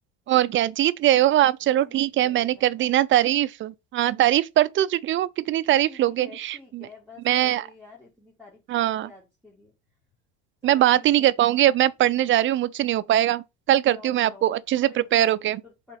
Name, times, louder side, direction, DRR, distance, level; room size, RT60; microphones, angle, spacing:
voice 1, 0.3-6.9 7.3-7.6 8.7-9.1 10.6-15.6, right 13 dB, 40° right, 0.5 m, -21 dB
voice 2, 1.6-3.0 5.8-9.7 10.6-11.3 13.9-14.5 14.8-16.0, left 4 dB, 5° left, 2.2 m, -49 dB
5.1 x 3.8 x 5.7 m
cardioid pair, 125°, 31 cm